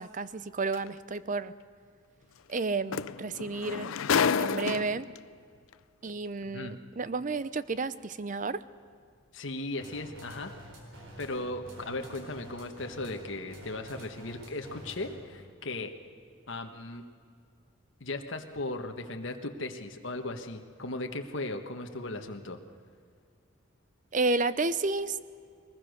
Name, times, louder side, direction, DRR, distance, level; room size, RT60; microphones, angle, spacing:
voice 1, 0.0-1.5 2.5-3.9 4.4-5.1 6.0-8.6 24.1-25.2, right 3 dB, 40° right, 16 dB, 0.6 m, -31 dB
sound 1, 0.7-0.9 2.6-2.7 2.9-5.2 6.1-6.2, left 6 dB, 85° left, 0.5 m, -29 dB
voice 2, 9.3-10.5 11.2-15.9 16.5-17.1 18.0-22.6, left 2 dB, 65° left, 4 dB, 1.4 m, -37 dB
sound 2, 9.8-15.3, right 1 dB, 80° right, 4.5 m, -48 dB
22.0 x 20.0 x 6.5 m, 2.2 s
head